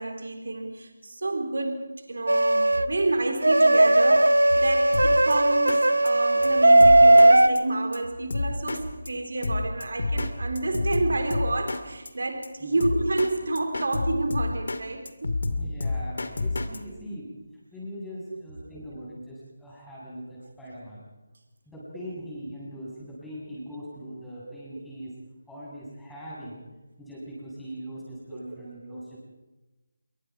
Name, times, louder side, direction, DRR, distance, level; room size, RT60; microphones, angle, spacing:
voice 1, 0.0-15.3 24.5-24.6 28.5-28.6 28.9-29.2, right 2 dB, 65° right, 5 dB, 3.7 m, -29 dB
sound 1, 2.3-2.9 3.4-7.5, right 1 dB, 85° right, 1.0 m, -17 dB
Drum kit, 4.9-5.3 5.7-5.8 6.1-6.2 6.4-6.5 6.8-7.3 7.6-7.7 7.9-8.0 8.3-8.8 9.1-9.2 9.4-10.3 10.6-11.8 12.1-12.2 12.4-12.5 12.8-13.3 13.6-14.8 15.1-16.8, left 3 dB, 65° left, 2.3 m, -28 dB
voice 2, 15.5-17.3 17.7-21.0 21.7-25.1 25.5-26.6 27.0-29.2, equal, 5° left, -8 dB, 7.9 m, -41 dB
27.0 x 23.0 x 4.9 m, 1.1 s
figure-of-eight pair, 160°, 0 cm